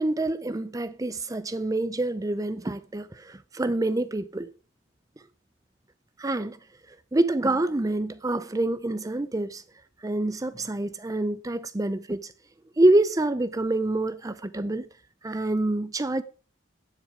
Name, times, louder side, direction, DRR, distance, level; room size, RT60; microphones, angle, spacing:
voice 1, 0.0-4.5 6.2-6.6 7.1-9.6 10.0-12.3 12.8-14.9 15.2-16.2, right 2 dB, 20° right, 0.5 m, -26 dB
12.5 x 10.0 x 4.9 m
head